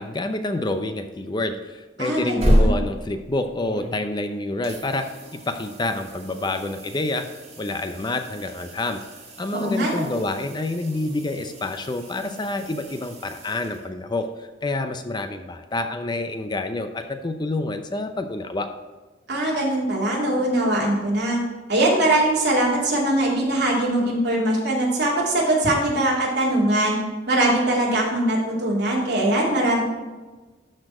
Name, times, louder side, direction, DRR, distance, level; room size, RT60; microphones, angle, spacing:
voice 1, 0.0-5.0 5.5-7.2 7.6-9.0 9.4-18.7, left 2 dB, 25° left, 7 dB, 0.5 m, -28 dB
voice 2, 2.0-2.7 9.5-10.1 19.3-21.4 21.7-27.0 27.3-29.8, right 1 dB, 65° right, -4 dB, 2.8 m, -21 dB
sound 1, 2.1-4.3 4.6-14.2 17.0-17.1, equal, 35° right, 2.0 m, -29 dB
12.5 x 4.4 x 4.8 m, 1.3 s
head